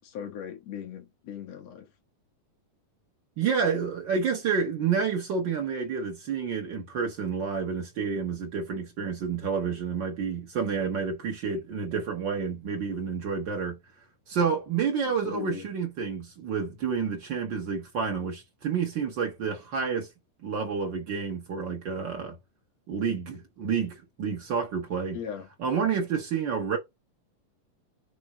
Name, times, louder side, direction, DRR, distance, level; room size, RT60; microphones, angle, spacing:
voice 1, 0.0-1.9 15.0-15.7 25.1-25.5, left 8 dB, 60° left, 2.1 m, -38 dB
voice 2, 3.4-13.8 14.3-20.1 20.4-22.4 22.9-25.2 25.6-26.8, right 6 dB, 70° right, 1.1 m, -29 dB
6.0 x 3.3 x 4.8 m
omnidirectional pair, 3.8 m